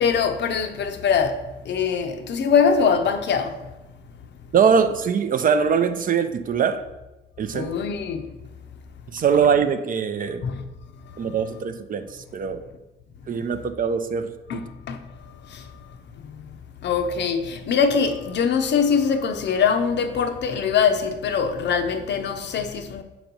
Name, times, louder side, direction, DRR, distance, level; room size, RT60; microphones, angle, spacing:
voice 1, 0.0-1.3 1.7-3.5 7.5-8.3 10.4-10.6 14.5-14.6 14.9-15.0 16.8-23.0, left 6 dB, 60° left, 0.6 m, -22 dB
voice 2, 4.5-6.8 7.4-7.7 9.1-10.4 11.2-12.6 13.3-14.7, right 6 dB, 45° right, 0.5 m, -22 dB
6.1 x 3.0 x 5.2 m
cardioid pair, 90°, 20 cm